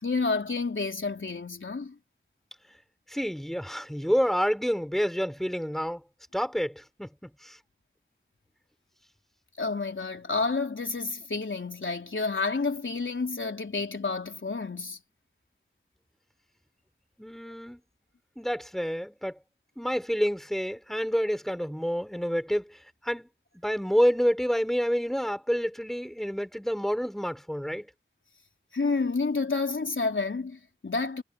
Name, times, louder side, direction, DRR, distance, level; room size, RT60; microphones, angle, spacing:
voice 1, 0.0-1.9 9.6-15.0 28.7-31.2, left 4 dB, 75° left, 3.9 m, -30 dB
voice 2, 3.1-6.0 6.3-7.6 17.2-17.8 18.4-19.4 19.8-22.8 23.0-23.3 23.6-27.9, equal, ahead, 5.3 m, -28 dB
wide cardioid pair, 45°, 20 cm